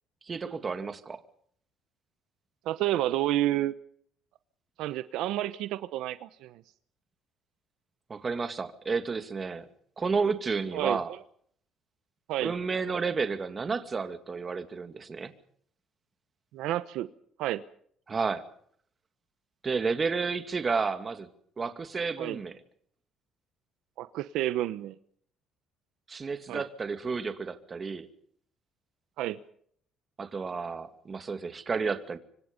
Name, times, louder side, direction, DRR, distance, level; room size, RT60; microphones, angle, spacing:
voice 1, 0.2-1.2 8.1-9.7 10.0-11.1 12.4-15.3 18.1-18.4 19.6-21.3 21.6-22.6 26.1-28.1 30.2-32.2, right 4 dB, 25° right, 9 dB, 2.4 m, -31 dB
voice 2, 2.6-3.7 4.8-6.6 10.7-11.0 12.3-12.5 16.5-17.1 17.4-17.6 22.2-22.4 24.0-24.9 26.5-26.6 29.2-29.4, right 14 dB, 80° right, 13 dB, 1.0 m, -30 dB
26.0 x 25.0 x 5.3 m, 0.63 s
cardioid pair, 125°, 0 cm